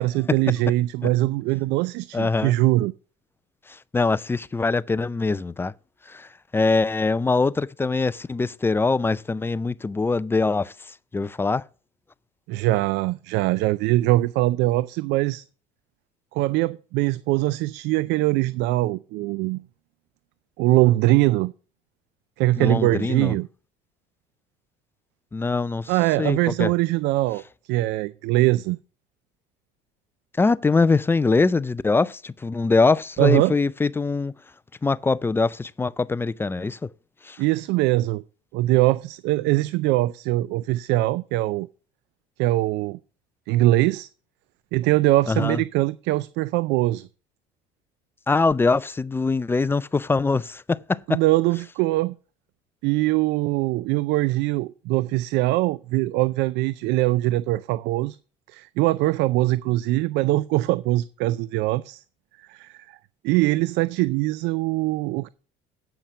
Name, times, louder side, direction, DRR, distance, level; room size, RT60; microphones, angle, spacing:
voice 1, 0.0-2.9 12.5-15.4 16.3-19.6 20.6-21.5 22.4-23.5 25.9-27.4 27.7-28.8 33.2-33.5 37.4-38.2 38.5-41.7 42.4-43.0 43.5-44.1 44.7-47.1 51.1-52.2 52.8-58.2 58.5-62.0 62.5-63.0 63.2-65.3, right 18 dB, 65° right, 0.4 m, -22 dB
voice 2, 2.1-2.5 3.9-5.7 6.1-10.7 11.1-11.6 22.6-23.3 25.3-25.9 26.2-26.7 30.4-34.3 34.8-36.9 37.3-37.4 45.3-45.6 48.3-51.2, left 3 dB, 10° left, 0.3 m, -23 dB
8.8 x 5.8 x 6.6 m
supercardioid pair, 90°, 19 cm